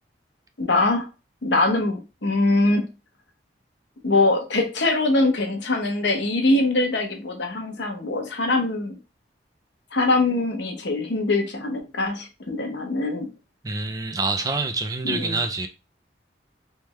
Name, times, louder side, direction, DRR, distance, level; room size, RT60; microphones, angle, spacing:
voice 1, 0.6-1.1 1.4-2.9 4.0-9.0 9.9-13.3 15.0-15.4, left 2 dB, 80° left, 0.9 m, -23 dB
voice 2, 13.6-15.7, right 3 dB, 20° right, 0.4 m, -26 dB
3.4 x 3.3 x 3.0 m
head